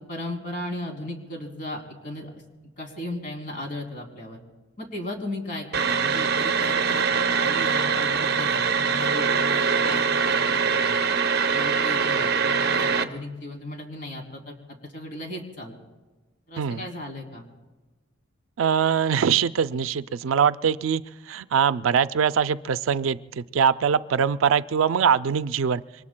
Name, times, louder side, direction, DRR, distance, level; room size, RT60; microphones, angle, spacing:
voice 1, 0.1-2.4 2.8-4.4 4.8-11.0 11.5-14.6 14.9-15.8 16.5-17.5, left 1 dB, 45° left, 1 dB, 3.0 m, -36 dB
sound 1, 5.7-13.0, right 6 dB, 55° right, 0.7 m, -23 dB
voice 2, 18.6-21.0 21.3-25.8, right 7 dB, 90° right, 14 dB, 0.4 m, -22 dB
27.0 x 24.0 x 2.2 m, 1.2 s
head